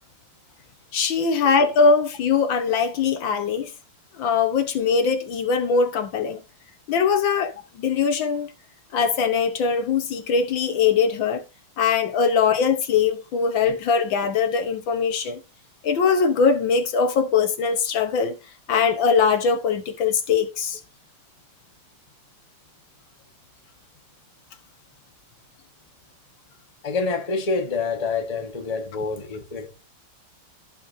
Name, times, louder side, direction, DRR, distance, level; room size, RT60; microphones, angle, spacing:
voice 1, 0.9-3.7 4.1-6.4 6.9-8.5 8.9-11.4 11.8-15.4 15.8-18.4 18.7-20.8, left 5 dB, 65° left, 1.6 m, -21 dB
voice 2, 26.8-29.7, left 4 dB, 20° left, 1.1 m, -27 dB
14.5 x 5.2 x 2.5 m
omnidirectional pair, 2.4 m